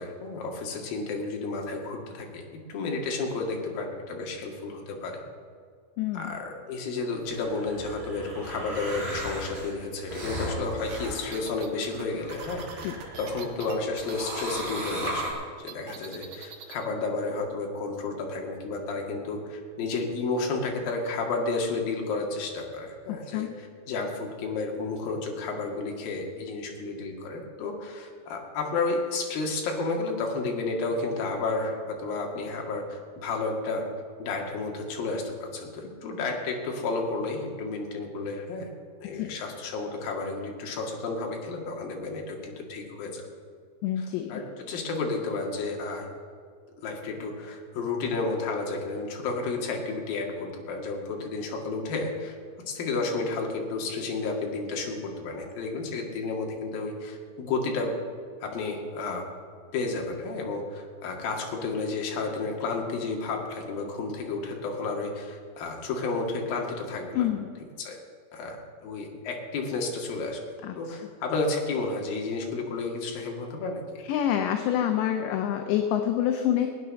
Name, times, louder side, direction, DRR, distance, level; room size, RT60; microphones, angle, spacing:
voice 1, 0.0-5.2 6.1-15.4 15.6-33.9 34.2-38.7 39.0-43.2 44.0-46.1 46.8-52.4 52.7-57.9 58.4-59.3 59.7-67.3 67.8-68.0 68.3-70.4 70.8-74.0, left 3 dB, 55° left, 1 dB, 3.3 m, -32 dB
voice 2, 6.0-6.3 12.8-13.0 23.1-23.6 39.1-39.3 43.8-44.3 67.2-67.5 70.6-71.0 74.0-76.7, left 10 dB, 75° left, 5 dB, 2.8 m, -27 dB
sound 1, 7.2-13.5 13.9-15.3, equal, 10° right, 4.5 m, -37 dB
sound 2, 10.9-15.1 15.4-16.8, right 8 dB, 75° right, 3.7 m, -43 dB
20.0 x 9.5 x 6.4 m, 2.1 s
omnidirectional pair, 5.8 m